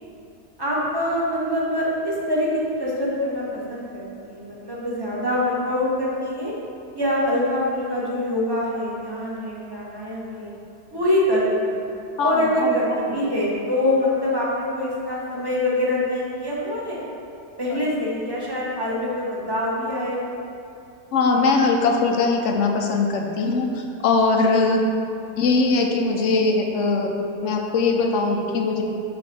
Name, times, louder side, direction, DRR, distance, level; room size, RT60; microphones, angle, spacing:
voice 1, 0.6-6.5 6.9-10.5 10.9-11.8 12.2-17.0 17.6-20.3, left 1 dB, 15° right, -6 dB, 1.2 m, -24 dB
voice 2, 12.2-12.8 13.1-13.2 17.7-17.8 21.1-24.8 25.4-27.2 27.4-28.8, left 3 dB, 60° left, 1 dB, 0.8 m, -21 dB
6.1 x 3.8 x 6.2 m, 2.6 s
omnidirectional pair, 1.7 m